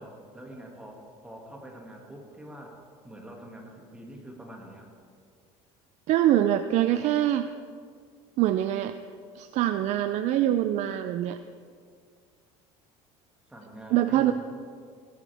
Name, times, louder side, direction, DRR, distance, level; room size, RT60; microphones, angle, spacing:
voice 1, 0.0-2.8 3.0-4.9 13.5-14.3, right 1 dB, 10° right, -1 dB, 2.3 m, -45 dB
voice 2, 6.1-7.5 8.4-8.9 9.3-11.4 13.9-14.3, right 12 dB, 55° right, 10 dB, 0.5 m, -24 dB
18.0 x 12.5 x 3.5 m, 2.1 s
cardioid pair, 130°, 14 cm